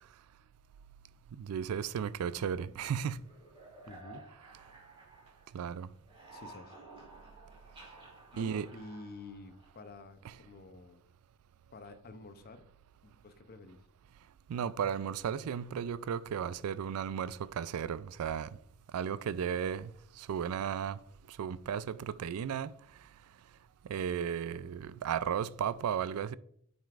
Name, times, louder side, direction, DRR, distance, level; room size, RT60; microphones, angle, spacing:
voice 1, 1.4-3.2 5.5-5.9 8.4-8.7 10.2-10.3 14.5-18.5 18.9-19.9 20.2-21.0 21.3-22.7 23.9-26.3, right 8 dB, 70° right, 0.3 m, -34 dB
sound 1, 2.2-5.7 6.0-10.0, right 2 dB, 25° right, 2.5 m, -54 dB
voice 2, 3.9-4.3 6.3-6.8 8.3-11.0 11.7-12.7 13.0-13.8, left 3 dB, 45° left, 0.6 m, -49 dB
9.0 x 5.1 x 2.4 m
head